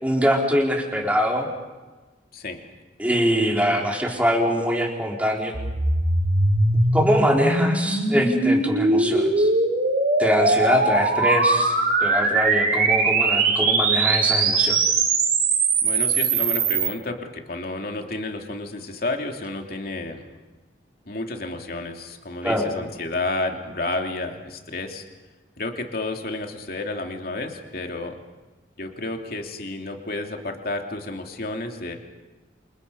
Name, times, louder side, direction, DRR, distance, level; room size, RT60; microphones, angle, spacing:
voice 1, 0.0-1.5 3.0-5.6 6.9-9.5 10.2-11.7 12.0-14.8 22.4-22.7, equal, 10° right, -1 dB, 4.1 m, -23 dB
sound 1, 5.5-16.9, right 3 dB, 55° right, 5.4 m, -21 dB
voice 2, 15.8-20.4 21.1-25.0 25.6-28.2 28.8-32.0, left 2 dB, 55° left, 3 dB, 2.8 m, -31 dB
29.0 x 28.0 x 5.5 m, 1.2 s
head